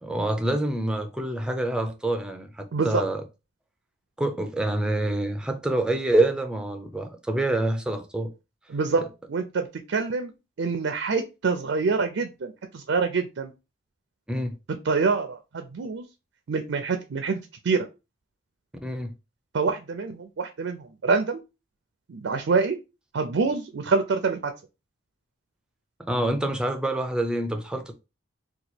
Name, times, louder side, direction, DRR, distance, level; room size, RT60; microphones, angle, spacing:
voice 1, 0.0-3.2 4.2-8.3 14.3-14.6 18.8-19.1 26.0-27.9, right 1 dB, 5° right, 0.4 m, -26 dB
voice 2, 2.7-3.0 8.7-9.0 9.3-13.5 14.8-16.1 16.5-17.9 19.5-21.4 22.1-22.8 23.1-24.5, right 4 dB, 70° right, 0.4 m, -26 dB
2.9 x 2.3 x 4.2 m
head